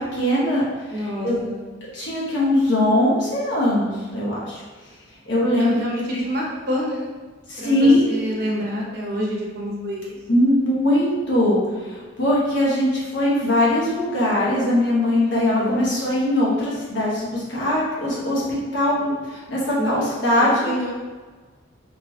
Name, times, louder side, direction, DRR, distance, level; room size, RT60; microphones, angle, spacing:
voice 1, 0.0-1.4 1.9-4.6 5.3-5.8 7.5-8.1 10.3-20.7, left 1 dB, 55° left, -6 dB, 1.1 m, -21 dB
voice 2, 0.9-1.6 5.6-7.1 7.6-10.2 15.2-15.8 19.8-20.9, equal, 50° right, -4 dB, 0.8 m, -28 dB
3.7 x 3.0 x 2.3 m, 1.4 s
head